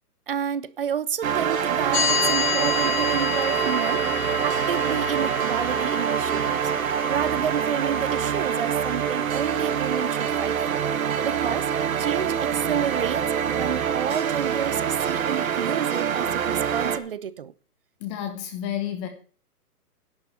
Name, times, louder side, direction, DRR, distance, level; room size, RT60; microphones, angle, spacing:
voice 1, 0.3-6.7 7.1-10.9 11.2-11.7 12.0-17.5, right 8 dB, 40° right, 0.5 m, -30 dB
sound 1, 1.2-17.0, right 8 dB, 60° right, 1.7 m, -25 dB
sound 2, 1.9-11.9, left 8 dB, 70° left, 3.7 m, -32 dB
voice 2, 18.0-19.1, left 10 dB, 20° left, 1.1 m, -30 dB
11.0 x 7.7 x 6.8 m
hypercardioid pair, 160°, 46 cm